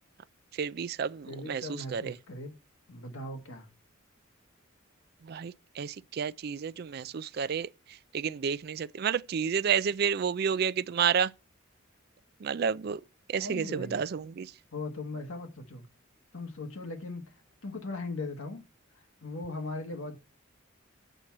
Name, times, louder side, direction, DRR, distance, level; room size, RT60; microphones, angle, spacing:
voice 1, 0.6-2.1 5.3-7.7 8.1-11.3 12.4-13.0 13.3-14.5, right 7 dB, 50° right, 0.4 m, -30 dB
voice 2, 1.3-2.6 2.9-3.7 13.4-14.0 14.7-15.9 16.3-17.2 17.6-18.6 18.9-20.2, left 2 dB, 90° left, 1.3 m, -39 dB
7.9 x 4.5 x 7.1 m
head